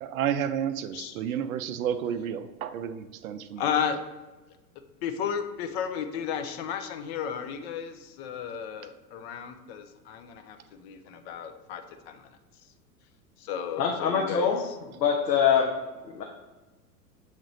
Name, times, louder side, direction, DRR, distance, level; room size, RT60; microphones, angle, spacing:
voice 1, 0.0-3.6, right 9 dB, 60° right, 11 dB, 0.5 m, -31 dB
voice 2, 0.9-1.4 3.6-4.0 5.0-12.3 13.4-14.8, left 8 dB, 40° left, 7 dB, 0.6 m, -33 dB
voice 3, 13.8-14.6 15.0-15.7 16.1-16.2, left 7 dB, 75° left, 1 dB, 0.8 m, -23 dB
7.1 x 2.4 x 3.1 m, 1.1 s
figure-of-eight pair, 90°, 50 cm